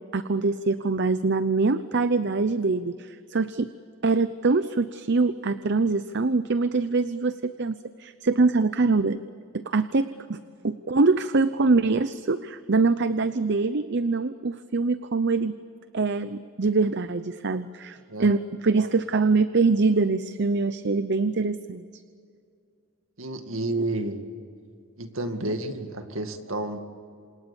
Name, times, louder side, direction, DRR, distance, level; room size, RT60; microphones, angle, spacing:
voice 1, 0.1-3.7 4.0-9.2 9.5-15.5 15.9-21.9, right 3 dB, 55° right, 12 dB, 0.7 m, -24 dB
voice 2, 23.2-24.3 25.0-26.8, right 2 dB, 75° right, 6 dB, 2.2 m, -30 dB
28.0 x 28.0 x 7.1 m, 2.5 s
head